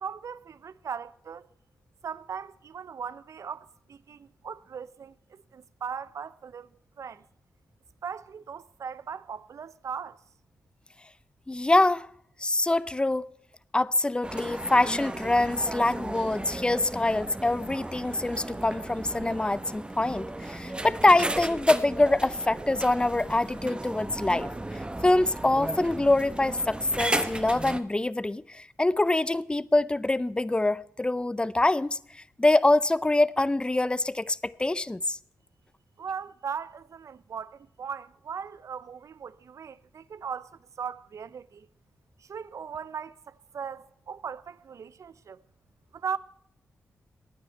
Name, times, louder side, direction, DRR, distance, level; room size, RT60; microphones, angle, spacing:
voice 1, 0.0-1.5 2.0-6.7 7.0-7.3 8.0-10.2 36.0-41.7 42.2-45.4 45.9-46.2, right 6 dB, 65° right, 0.6 m, -38 dB
voice 2, 11.5-12.1 12.4-13.3 13.7-35.2, left 2 dB, 15° left, 0.5 m, -25 dB
sound 1, 14.2-27.8, right 1 dB, 15° right, 1.1 m, -35 dB
16.0 x 9.7 x 4.5 m
cardioid pair, 50°, 6 cm